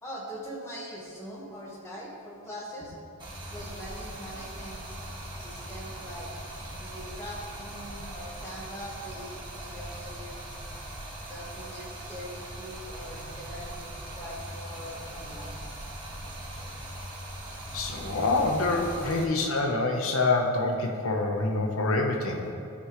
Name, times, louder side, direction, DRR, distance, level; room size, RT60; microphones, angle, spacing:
voice 1, 0.0-3.0 3.5-5.0 5.3-6.3 6.8-10.5 11.2-15.7, equal, 10° left, -5 dB, 1.6 m, -42 dB
Stream, 3.2-19.2, right 1 dB, 20° right, 1.5 m, -40 dB
voice 2, 17.7-22.5, left 2 dB, 65° left, 2 dB, 1.0 m, -26 dB
13.5 x 5.7 x 3.2 m, 2.6 s
head